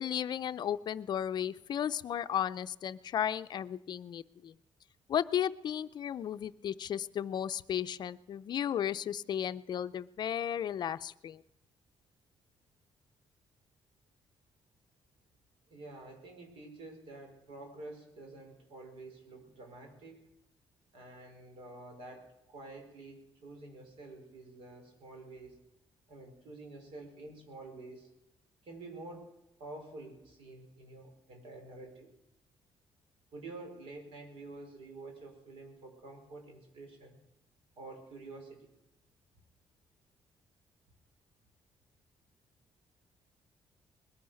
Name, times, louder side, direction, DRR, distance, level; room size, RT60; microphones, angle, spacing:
voice 1, 0.0-4.5 5.1-11.4, left 9 dB, 50° left, 13 dB, 0.5 m, -34 dB
voice 2, 15.7-20.3 20.9-25.6 26.1-28.1 28.6-29.3 29.6-32.1 33.3-37.2 37.8-38.7, right 2 dB, 75° right, 4 dB, 5.0 m, -49 dB
21.0 x 10.5 x 6.4 m, 0.89 s
cardioid pair, 150°, 9 cm